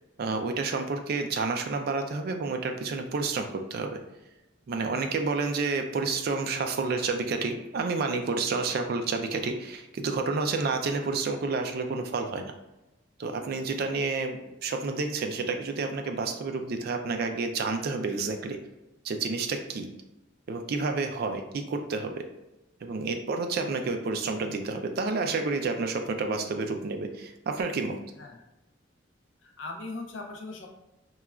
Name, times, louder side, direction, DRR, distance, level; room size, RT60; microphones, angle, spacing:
voice 1, 0.2-4.0 4.7-12.5 13.2-18.6 19.0-19.9 20.5-22.2 22.8-28.0, right 4 dB, 50° right, 5 dB, 0.3 m, -30 dB
voice 2, 29.4-30.7, left 3 dB, 70° left, 2 dB, 0.4 m, -39 dB
3.0 x 2.3 x 2.3 m, 0.97 s
head